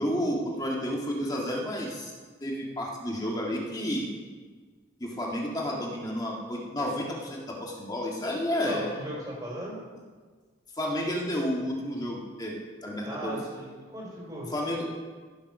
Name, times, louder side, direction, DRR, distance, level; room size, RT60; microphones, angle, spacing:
voice 1, 0.0-2.1 2.4-4.1 5.0-8.9 10.8-13.4 14.5-14.9, equal, 20° left, -2 dB, 1.8 m, -31 dB
voice 2, 8.6-9.8 13.0-14.5, right 1 dB, 20° right, -5 dB, 4.4 m, -37 dB
15.0 x 7.3 x 6.1 m, 1.5 s
head